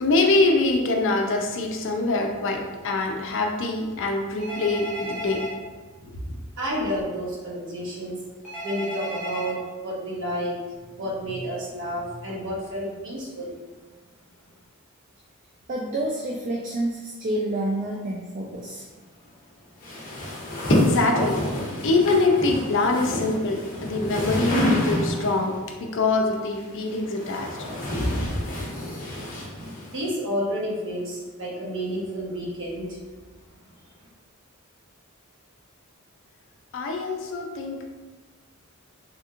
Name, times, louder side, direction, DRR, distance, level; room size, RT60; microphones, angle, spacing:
voice 1, 0.0-5.4 6.0-6.1 20.7-21.4 21.8-27.5 36.7-38.0, left 3 dB, 60° left, 2 dB, 0.4 m, -24 dB
Telephone, 4.4-5.5 8.4-9.5, equal, 5° right, 1.0 m, -33 dB
voice 2, 6.6-8.2 8.6-10.5 10.9-13.6 29.8-33.0, equal, 65° right, -5 dB, 1.0 m, -30 dB
voice 3, 15.7-18.8, right 1 dB, 40° right, -2 dB, 0.3 m, -28 dB
sound 1, 19.8-25.4 26.5-30.0, left 1 dB, 40° left, 0.8 m, -27 dB
3.4 x 2.8 x 2.4 m, 1.3 s
head